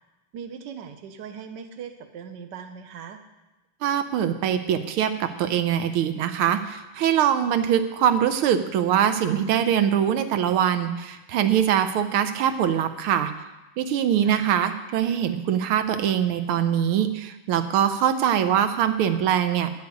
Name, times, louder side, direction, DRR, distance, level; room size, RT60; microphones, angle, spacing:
voice 1, 0.3-3.2 14.2-14.5, right 7 dB, 60° right, 7 dB, 1.5 m, -39 dB
voice 2, 3.8-13.3 13.8-19.7, right 9 dB, 85° right, 9 dB, 1.7 m, -23 dB
10.5 x 6.7 x 8.3 m, 1.0 s
omnidirectional pair, 2.3 m